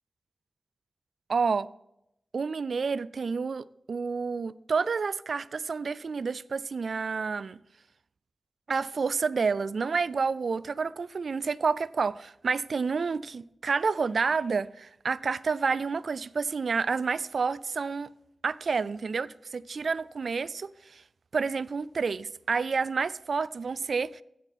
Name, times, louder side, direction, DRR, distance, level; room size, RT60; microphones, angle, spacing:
voice 1, 1.3-1.7 2.3-7.6 8.7-18.1 18.4-21.0 21.3-24.2, right 5 dB, 70° right, 0.3 m, -29 dB
15.5 x 5.2 x 4.2 m
wide cardioid pair, 70°, 0 cm